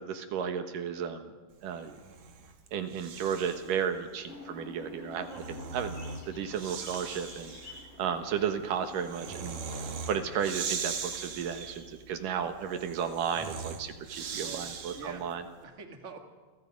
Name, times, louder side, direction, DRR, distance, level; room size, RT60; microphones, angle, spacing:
voice 1, 0.0-1.3 1.6-2.0 2.7-5.3 5.7-6.0 6.3-7.6 8.0-15.4, right 7 dB, 75° right, 7 dB, 2.9 m, -33 dB
Breathing, 1.8-3.8 5.0-15.3, right 5 dB, 60° right, 3.0 m, -40 dB
sound 1, 4.3-10.0, left 4 dB, 50° left, 4.0 m, -49 dB
voice 2, 5.3-5.6 12.4-12.5 14.4-15.3 15.6-16.2, right 5 dB, 25° right, 4 dB, 2.0 m, -46 dB
29.0 x 23.0 x 5.3 m, 1.3 s
omnidirectional pair, 3.8 m